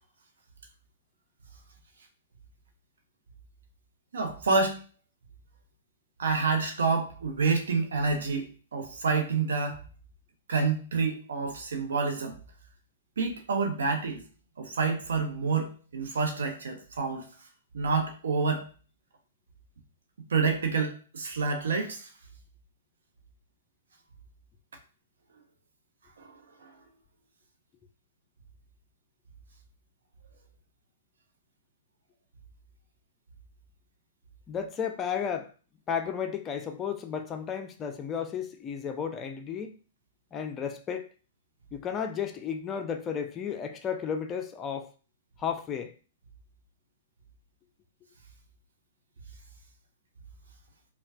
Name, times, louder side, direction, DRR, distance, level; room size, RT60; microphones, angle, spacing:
voice 1, 4.1-4.8 6.2-9.8 10.5-12.4 13.2-14.2 14.6-17.3 17.7-18.6 20.3-22.1 26.2-26.3 26.6-26.7, right 4 dB, 65° right, 0.9 m, -28 dB
voice 2, 34.5-35.5 35.9-39.8 40.3-41.1 41.7-44.9 45.4-45.9, left 7 dB, 20° left, 0.4 m, -33 dB
5.2 x 2.3 x 2.4 m
figure-of-eight pair, 110°, 0 cm